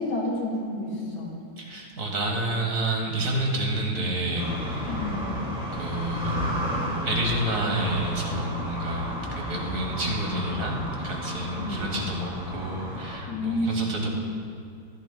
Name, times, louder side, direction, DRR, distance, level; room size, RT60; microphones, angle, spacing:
voice 1, 0.0-1.4 4.9-5.4 11.6-12.0 13.3-14.0, left 1 dB, 70° left, -2 dB, 2.6 m, -30 dB
voice 2, 1.6-4.9 5.7-6.4 7.0-14.1, right 1 dB, 50° right, 0 dB, 1.7 m, -29 dB
sound 1, 4.4-13.2, equal, 5° right, 1.9 m, -32 dB
15.0 x 12.0 x 2.2 m, 2.3 s
omnidirectional pair, 1.9 m